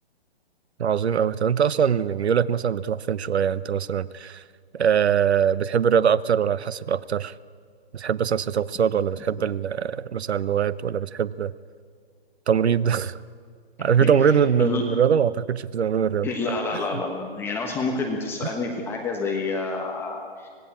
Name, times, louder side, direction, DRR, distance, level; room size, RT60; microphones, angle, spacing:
voice 1, 0.8-4.4 4.7-7.3 7.9-11.5 12.5-13.2 13.8-16.3 16.7-16.8, right 7 dB, 85° right, 0.9 m, -22 dB
voice 2, 14.0-14.8 16.2-20.5, left 3 dB, 5° left, 1.3 m, -29 dB
25.0 x 19.0 x 8.6 m
hypercardioid pair, 165°, 32 cm